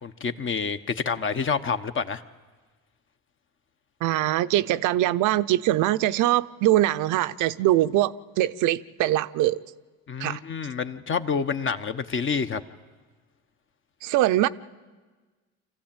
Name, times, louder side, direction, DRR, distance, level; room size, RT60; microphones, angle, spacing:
voice 1, 0.0-2.2 10.1-12.6, left 5 dB, 35° left, 1.1 m, -28 dB
voice 2, 4.0-9.6 10.2-10.4 14.0-14.5, right 14 dB, 65° right, 0.6 m, -22 dB
25.0 x 15.0 x 8.9 m
supercardioid pair, 85°, 33 cm